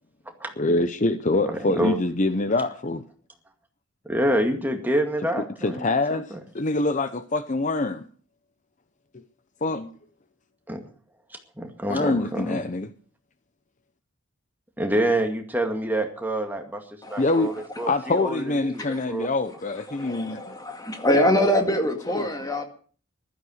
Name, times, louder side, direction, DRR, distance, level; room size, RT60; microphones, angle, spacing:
voice 1, 0.6-3.0 5.6-8.0 9.6-9.9 11.9-12.9 17.2-17.5 17.9-20.6 22.2-22.3, left 2 dB, 35° left, 0.7 m, -25 dB
voice 2, 1.4-2.0 4.1-6.4 10.7-10.8 11.6-12.6 14.8-16.8 17.1-19.3, right 1 dB, 10° right, 2.1 m, -27 dB
voice 3, 19.9-22.6, equal, 20° left, 2.1 m, -24 dB
15.0 x 12.5 x 6.4 m
head